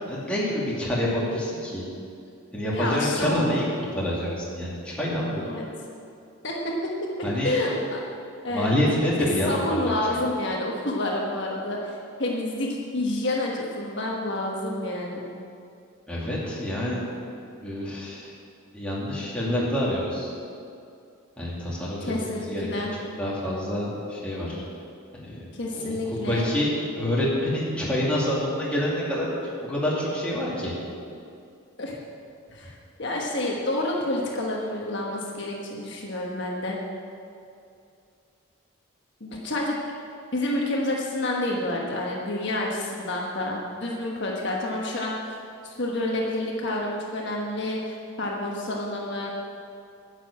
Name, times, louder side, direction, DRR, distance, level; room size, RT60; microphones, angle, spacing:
voice 1, 0.1-1.8 2.5-3.6 3.9-5.4 7.2-7.5 8.5-9.8 10.1-10.2 16.1-17.0 17.6-18.3 18.7-20.3 21.4-22.8 23.2-24.6 25.1-25.4 25.7-29.3 29.6-30.7, left 1 dB, 5° left, -7 dB, 2.4 m, -27 dB
voice 2, 2.7-3.6 5.4-5.6 6.4-6.9 7.4-8.0 8.4-8.7 9.5-15.2 22.1-22.9 25.5-26.5 31.8-31.9 32.5-32.7 33.0-36.8 39.2-39.8 40.3-45.1 45.6-49.3, left 1 dB, 55° left, -2 dB, 1.3 m, -28 dB
9.9 x 7.0 x 8.7 m, 2.5 s
head